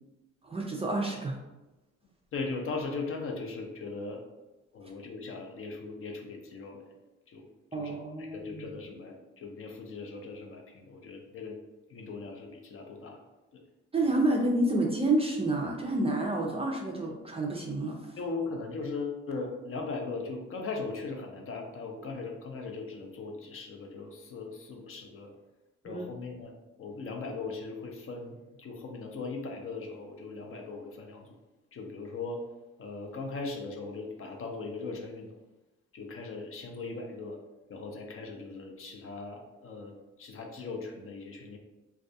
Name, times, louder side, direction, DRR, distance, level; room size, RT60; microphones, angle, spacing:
voice 1, 0.4-1.4 7.7-8.8 13.9-18.0 25.9-26.0, right 2 dB, 20° right, -1 dB, 0.4 m, -29 dB
voice 2, 2.3-4.2 4.7-6.9 7.3-7.5 7.8-11.6 11.9-13.2 18.2-25.3 25.8-26.5 26.8-31.3 31.7-32.4 32.8-35.4 35.9-37.4 37.7-39.9 40.2-41.6, left 3 dB, 45° left, 2 dB, 0.5 m, -39 dB
2.3 x 2.2 x 2.6 m, 1.0 s
cardioid pair, 90°, 30 cm